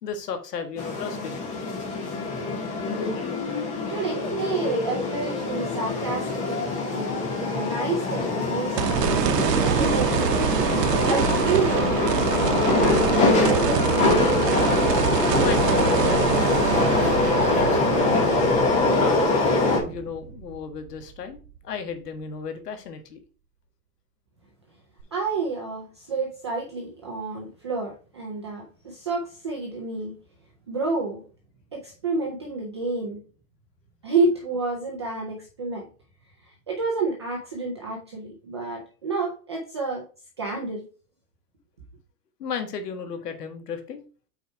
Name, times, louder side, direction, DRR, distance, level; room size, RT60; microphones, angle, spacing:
voice 1, 0.0-1.5 15.4-18.1 18.9-23.2 42.4-44.0, left 6 dB, 80° left, 1.6 m, -34 dB
sound 1, 0.8-19.8, left 3 dB, 15° left, 1.0 m, -24 dB
voice 2, 3.9-9.3 9.6-10.2 11.0-14.3 25.1-30.1 30.7-31.2 31.7-33.2 34.0-35.9 36.4-40.1 40.4-40.8, right 3 dB, 20° right, 0.4 m, -29 dB
sound 2, 8.8-21.1 21.6-21.7 25.0-25.1, right 9 dB, 85° right, 0.9 m, -26 dB
5.6 x 4.6 x 4.3 m
hypercardioid pair, 165°, 47 cm